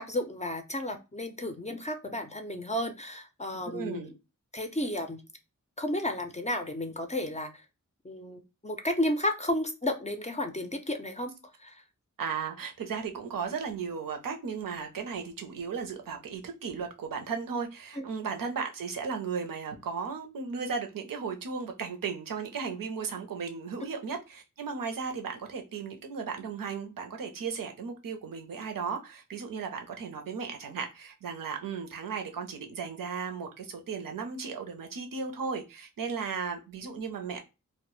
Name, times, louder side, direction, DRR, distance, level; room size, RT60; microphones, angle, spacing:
voice 1, 0.0-4.1 4.5-5.2 5.8-7.5 8.0-11.8 18.0-18.1, left 1 dB, 20° left, 5 dB, 0.4 m, -32 dB
voice 2, 3.7-4.1 12.2-37.4, right 5 dB, 85° right, 4 dB, 0.6 m, -35 dB
2.1 x 2.0 x 3.0 m, 0.27 s
cardioid pair, 50°, 33 cm